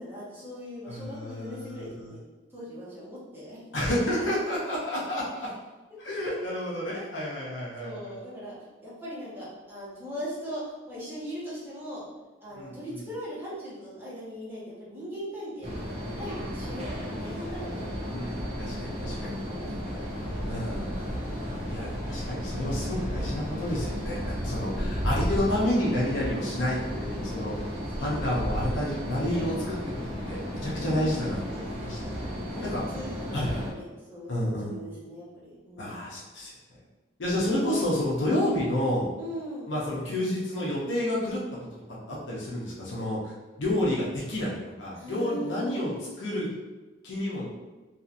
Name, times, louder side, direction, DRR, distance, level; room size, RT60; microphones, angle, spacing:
voice 1, 0.0-2.2 2.5-3.6 5.4-5.5 6.3-6.5 7.8-8.5 8.8-12.1 12.4-18.4 18.9-20.7 24.4-25.0 27.6-28.4 29.2-29.7 30.7-31.3 32.0-33.4 33.7-36.0 39.2-39.7 44.9-46.1, equal, 10° right, -10 dB, 1.0 m, -40 dB
voice 2, 0.9-2.1 3.7-5.5 6.0-8.1 12.5-13.0 18.1-19.4 20.5-21.2 21.4-27.6 28.0-29.5 30.0-32.0 32.7-32.8 33.3-33.6 34.3-34.7 35.8-36.5 37.2-39.1 39.7-41.4 42.1-45.9 46.2-46.5 47.0-47.5, left 1 dB, 70° left, -5 dB, 0.6 m, -30 dB
sound 1, 15.6-33.7, equal, 30° right, 0.6 m, -33 dB
2.7 x 2.4 x 2.5 m, 1.2 s
head